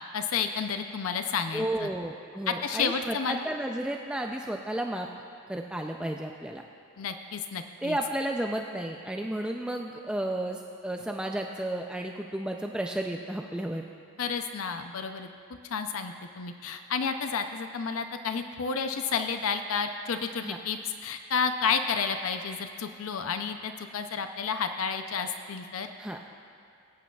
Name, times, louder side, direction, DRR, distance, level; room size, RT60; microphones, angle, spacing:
voice 1, 0.1-1.9 2.5-3.4 7.0-8.0 14.2-15.3 15.7-25.9, left 6 dB, 75° left, 7 dB, 0.5 m, -31 dB
voice 2, 1.5-5.1 5.5-6.6 7.8-13.8 20.4-20.6 26.0-26.2, right 1 dB, 5° right, 1 dB, 0.3 m, -32 dB
22.0 x 8.5 x 2.3 m, 2.3 s
head